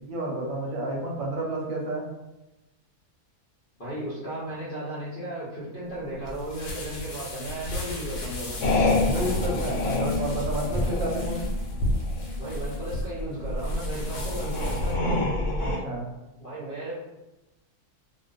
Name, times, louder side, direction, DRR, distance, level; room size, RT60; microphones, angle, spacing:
voice 1, 0.0-2.1 8.9-11.4 15.6-16.1, right 1 dB, 70° right, -2 dB, 1.0 m, -31 dB
voice 2, 3.8-8.6 10.8-11.0 12.4-15.3 16.4-17.0, right 1 dB, 50° left, -9 dB, 0.7 m, -35 dB
sound 1, 5.9-14.9, left 2 dB, 70° left, 1.0 m, -39 dB
sound 2, 8.6-15.8, left 2 dB, 90° left, 1.1 m, -27 dB
2.4 x 2.3 x 2.4 m, 0.96 s
omnidirectional pair, 1.6 m